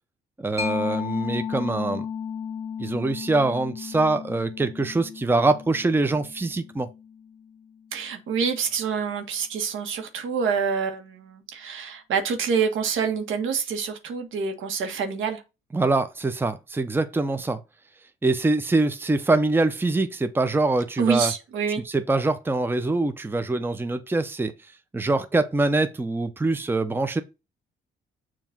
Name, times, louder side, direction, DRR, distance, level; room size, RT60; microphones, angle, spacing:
voice 1, 0.4-2.1 2.8-6.9 15.7-17.6 18.2-21.3 21.9-24.5 24.9-27.2, right 2 dB, 10° right, 0.7 m, -24 dB
Mallet percussion, 0.6-7.8, left 7 dB, 35° left, 2.0 m, -34 dB
voice 2, 7.9-15.4 21.0-21.8, right 6 dB, 80° right, 1.6 m, -27 dB
7.0 x 3.0 x 5.8 m
cardioid pair, 90°, 20 cm